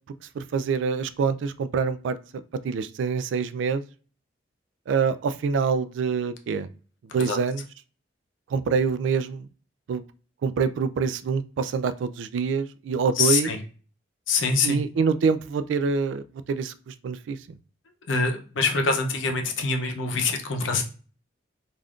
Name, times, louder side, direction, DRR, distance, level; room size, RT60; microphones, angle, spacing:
voice 1, 0.4-2.2 2.6-3.8 4.9-6.7 7.1-7.6 8.5-9.5 9.9-10.0 10.4-13.5 14.6-17.4, right 5 dB, 75° right, 13 dB, 0.3 m, -25 dB
voice 2, 13.2-13.6 14.3-14.8 18.1-20.8, left 4 dB, 85° left, 4 dB, 0.6 m, -24 dB
3.5 x 2.5 x 2.4 m, 0.38 s
head